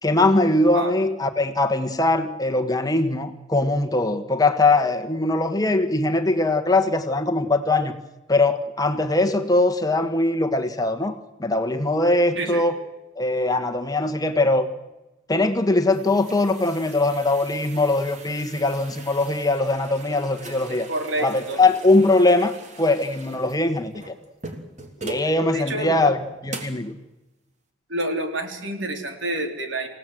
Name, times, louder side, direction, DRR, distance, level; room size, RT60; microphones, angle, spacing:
voice 1, 0.0-7.9 8.3-12.8 13.2-14.7 15.3-20.9 21.2-24.1 25.0-26.9, left 2 dB, 20° left, 7 dB, 1.5 m, -21 dB
sound 1, 15.5-25.3 25.8-25.9 26.5-26.9, right 3 dB, 40° right, 3.0 m, -41 dB
voice 2, 20.7-21.6 25.5-26.0 27.9-29.9, right 1 dB, 75° right, 5 dB, 4.0 m, -28 dB
28.0 x 17.0 x 7.8 m, 1.0 s
head